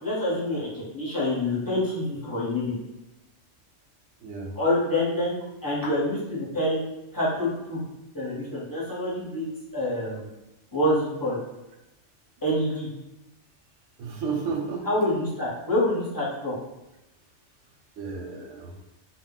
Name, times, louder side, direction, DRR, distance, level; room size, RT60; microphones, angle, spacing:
voice 1, 0.0-2.8 4.6-5.3 5.6-6.8 7.1-7.8 8.1-10.3 10.7-11.4 12.4-12.9 14.8-16.5, left 1 dB, 20° left, -8 dB, 0.7 m, -26 dB
voice 2, 4.2-4.5 14.0-15.0 18.0-18.8, right 5 dB, 85° right, 2 dB, 0.9 m, -32 dB
2.2 x 2.0 x 3.7 m, 0.93 s
omnidirectional pair, 1.2 m